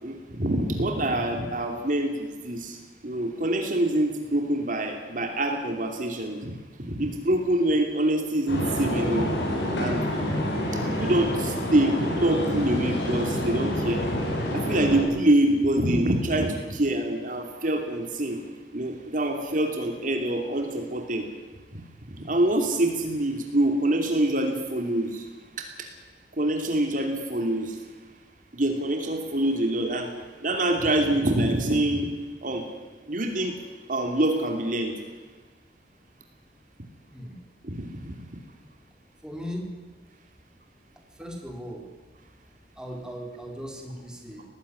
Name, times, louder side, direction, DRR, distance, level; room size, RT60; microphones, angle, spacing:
voice 1, 0.0-2.8 3.0-6.5 6.9-9.4 9.8-10.0 10.9-14.0 14.5-18.4 18.7-21.3 21.7-21.8 22.3-25.2 25.6-25.7 26.4-27.8 28.5-30.1 30.4-32.1 32.4-32.7 33.1-33.6 33.9-34.9 37.6-38.1, right 1 dB, 50° right, 4 dB, 2.7 m, -25 dB
sound 1, 8.5-15.0, equal, 85° left, 7.7 m, -27 dB
voice 2, 39.2-39.7 41.1-41.9 42.8-44.5, equal, 5° right, 1 dB, 4.0 m, -37 dB
19.5 x 15.5 x 10.0 m, 1.3 s
head